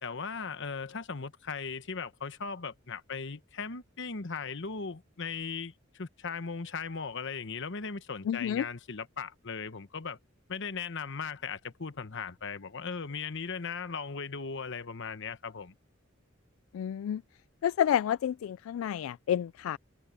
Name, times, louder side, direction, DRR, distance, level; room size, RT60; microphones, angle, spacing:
voice 1, 0.0-10.2 10.5-15.7, left 5 dB, 65° left, 1.1 m, -38 dB
voice 2, 8.2-8.7 16.7-17.2 17.6-19.8, left 9 dB, 90° left, 0.3 m, -29 dB
head